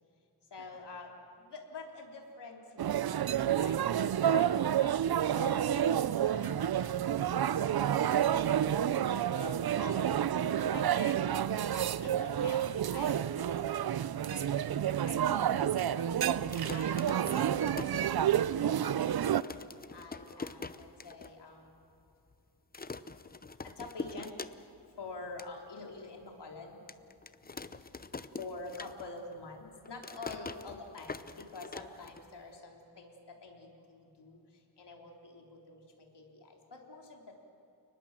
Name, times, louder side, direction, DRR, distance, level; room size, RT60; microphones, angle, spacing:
voice 1, 0.5-1.1 1.4-3.1 3.6-3.8 4.3-8.1 9.3-10.2 10.6-11.4 11.7-13.9 14.3-14.6 15.1-16.2 16.7-19.2 19.9-21.7 23.6-24.4 25.0-26.8 28.4-34.4 34.8-37.4, left 3 dB, 70° left, 1 dB, 3.8 m, -47 dB
sound 1, 2.8-19.4, right 10 dB, 60° right, 0.6 m, -29 dB
voice 2, 9.0-9.4 14.9-15.1 20.1-20.3 23.5-23.6 27.4-27.8 30.3-30.4, left 7 dB, 90° left, 1 dB, 2.1 m, -61 dB
sound 2, 16.4-18.6 19.0-19.1 19.3-21.3 21.7-21.8 22.0-22.3 22.7-24.9 25.2-25.5 26.0-26.1 26.9-29.3 29.6-32.5, left 4 dB, 20° left, 0.7 m, -44 dB
29.5 x 20.0 x 7.5 m, 2.8 s
wide cardioid pair, 115°, 43 cm